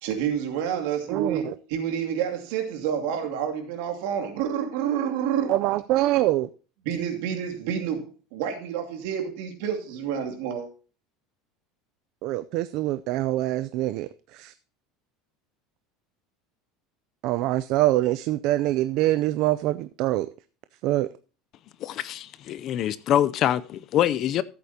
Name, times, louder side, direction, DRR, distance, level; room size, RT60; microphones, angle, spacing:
voice 1, 0.0-5.5 6.8-10.7, right 8 dB, 70° right, 2.5 m, -29 dB
voice 2, 1.1-1.5 5.5-6.5 12.2-14.5 17.2-20.3 20.8-21.1, right 15 dB, 45° right, 0.4 m, -24 dB
voice 3, 21.8-24.4, left 11 dB, 35° left, 0.5 m, -25 dB
14.5 x 8.4 x 2.8 m
cardioid pair, 175°, 0 cm